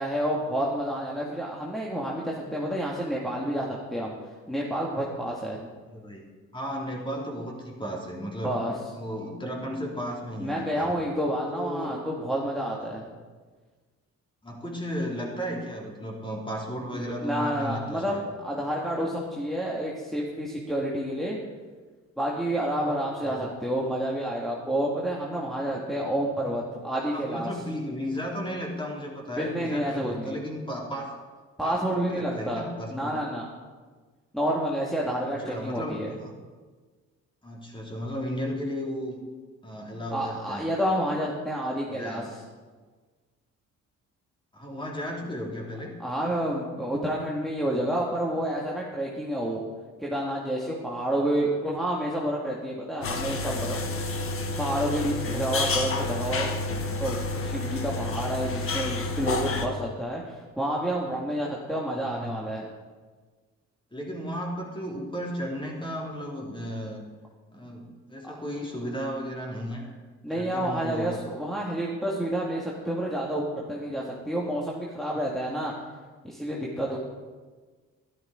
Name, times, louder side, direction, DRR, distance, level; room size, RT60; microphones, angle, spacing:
voice 1, 0.0-4.1 4.5-5.7 8.4-8.8 10.4-13.1 16.9-18.2 18.4-21.4 22.2-27.5 29.4-30.4 31.6-32.6 32.9-33.5 34.3-36.1 40.1-42.4 46.0-49.6 50.0-54.1 54.6-56.5 57.0-62.7 68.2-68.4 70.2-75.7 76.2-77.0, right 1 dB, ahead, -4 dB, 1.9 m, -29 dB
voice 2, 5.9-8.5 8.9-10.9 11.5-12.0 14.4-18.2 23.2-23.5 27.1-31.1 31.6-33.2 35.4-36.3 37.4-39.2 39.6-40.7 41.9-42.3 44.5-45.9 61.9-62.4 63.9-67.0 67.5-69.9 70.3-71.2, equal, 15° left, -1 dB, 3.3 m, -34 dB
sound 1, 53.0-59.7, left 3 dB, 45° left, 1.4 m, -30 dB
12.5 x 12.0 x 5.0 m, 1.4 s
cardioid pair, 90°, 30 cm